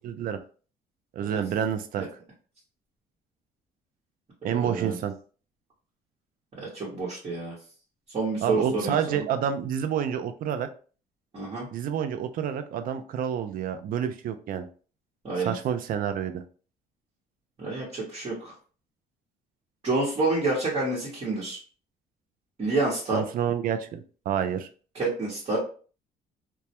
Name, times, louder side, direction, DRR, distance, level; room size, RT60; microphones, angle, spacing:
voice 1, 0.0-0.4 1.1-2.0 4.4-5.2 8.4-10.7 11.7-14.7 15.4-16.4 23.1-24.7, right 8 dB, 55° right, 9 dB, 0.4 m, -28 dB
voice 2, 4.4-5.0 6.6-7.6 8.1-9.2 11.3-11.7 15.2-15.5 17.6-18.5 19.8-21.6 22.6-23.2 24.9-25.6, right 3 dB, 35° right, -5 dB, 1.0 m, -28 dB
2.2 x 2.1 x 2.8 m, 0.39 s
cardioid pair, 110°, 17 cm